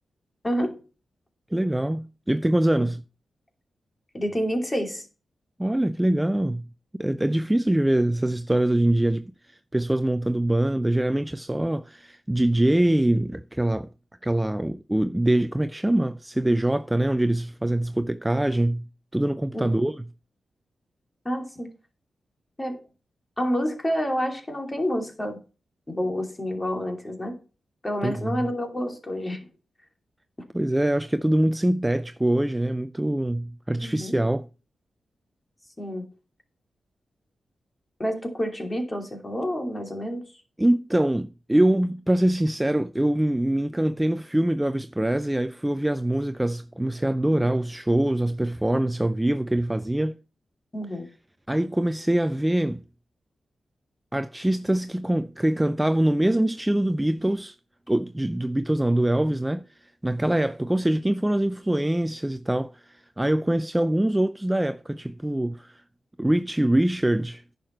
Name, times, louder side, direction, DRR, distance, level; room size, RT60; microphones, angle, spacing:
voice 1, 0.4-0.8 2.7-2.9 4.1-5.1 19.5-19.7 21.2-21.7 22.6-22.8 23.4-25.4 25.9-27.4 27.8-29.4 33.8-34.2 35.8-36.1 38.0-40.2 50.7-51.1, equal, 20° left, 2.8 m, -28 dB
voice 2, 1.5-3.0 5.6-6.7 6.9-13.9 14.2-18.9 19.1-20.0 28.0-28.5 30.5-34.5 40.6-50.2 51.5-52.8 54.1-57.5 57.9-65.8 66.2-67.4, right 1 dB, 10° right, 0.5 m, -24 dB
10.5 x 6.7 x 4.5 m
cardioid pair, 80°, 0 cm